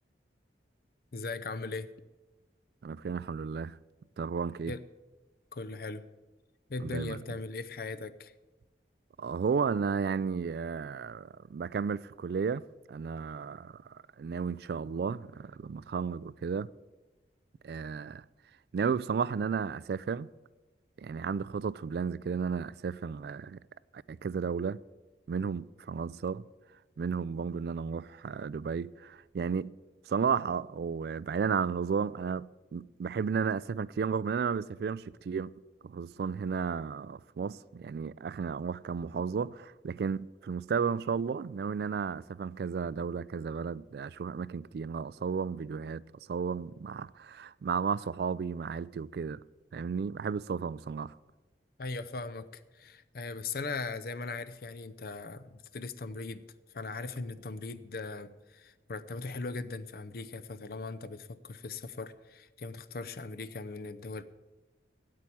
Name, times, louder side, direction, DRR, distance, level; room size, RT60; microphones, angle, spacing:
voice 1, 1.1-1.9 4.7-4.8 5.5-6.0 6.7-8.3 51.8-56.4 56.7-64.2, left 3 dB, 55° left, 0.6 m, -39 dB
voice 2, 2.8-3.8 4.2-4.7 6.8-7.2 9.2-12.6 12.9-16.7 17.6-18.2 18.7-20.3 21.0-23.6 23.9-24.8 25.3-26.5 27.0-29.7 30.1-35.5 35.8-46.0 46.3-49.4 49.7-51.1, right 6 dB, 60° right, 0.3 m, -33 dB
8.6 x 8.5 x 9.2 m
head